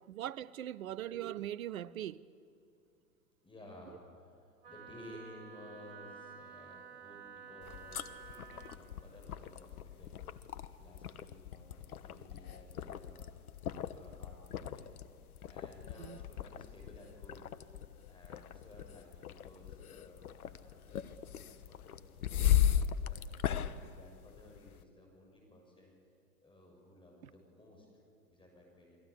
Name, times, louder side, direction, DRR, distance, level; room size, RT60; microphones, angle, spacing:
voice 1, 0.0-2.2 16.0-16.2, right 12 dB, 60° right, 0.9 m, -40 dB
voice 2, 3.4-10.2 10.4-10.5 10.8-13.4 13.8-14.9 15.5-17.4 18.1-23.4 23.9-26.0 26.4-29.0, left 1 dB, 10° left, 6.6 m, -56 dB
Wind instrument woodwind instrument, 4.6-8.8, right 7 dB, 80° right, 2.4 m, -51 dB
sound 1, 7.6-24.8, left 10 dB, 65° left, 1.3 m, -37 dB
29.0 x 22.5 x 8.5 m
figure-of-eight pair, 110°, 48 cm